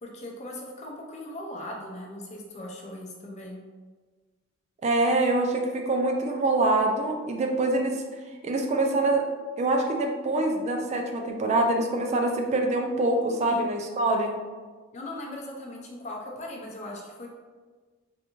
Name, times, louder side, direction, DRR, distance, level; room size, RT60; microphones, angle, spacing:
voice 1, 0.0-3.6 13.4-13.8 14.9-17.3, left 1 dB, 35° left, -1 dB, 0.6 m, -39 dB
voice 2, 4.8-8.0 8.4-9.3 9.6-14.4, right 2 dB, 35° right, 2 dB, 0.3 m, -25 dB
3.4 x 2.5 x 2.9 m, 1.4 s
head